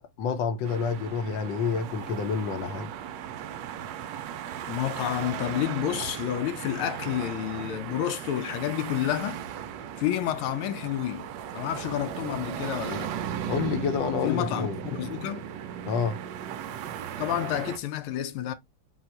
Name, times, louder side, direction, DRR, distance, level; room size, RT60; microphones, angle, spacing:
voice 1, 0.2-2.9 13.5-14.8 15.8-16.2, left 6 dB, 70° left, 1.2 m, -28 dB
sound 1, 0.6-17.8, right 9 dB, 75° right, 1.0 m, -37 dB
voice 2, 4.7-9.5 10.0-11.3 11.5-13.1 14.2-15.5 17.2-18.5, left 12 dB, 85° left, 1.5 m, -30 dB
4.1 x 2.3 x 4.3 m
omnidirectional pair, 2.3 m